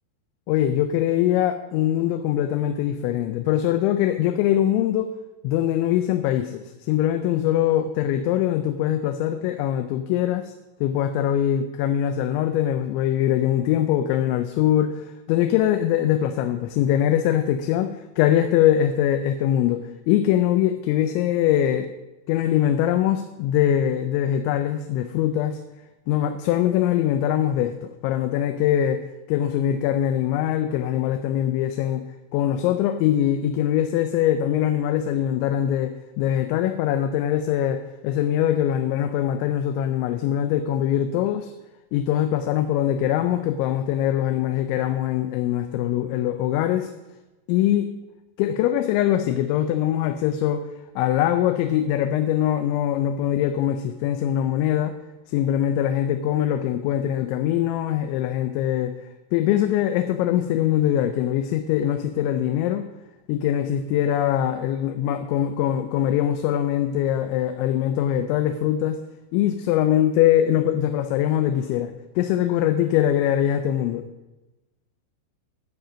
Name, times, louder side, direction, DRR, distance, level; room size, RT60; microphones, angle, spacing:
voice 1, 0.5-5.1 5.4-10.5 10.8-21.9 22.3-25.6 26.1-32.1 32.3-41.5 41.9-46.9 47.5-47.9 48.4-50.7 51.0-55.0 55.3-59.0 59.3-62.9 63.3-69.0 69.3-74.0, left 11 dB, 90° left, 7 dB, 2.9 m, -22 dB
10.5 x 7.4 x 5.1 m, 1.1 s
omnidirectional pair, 5.2 m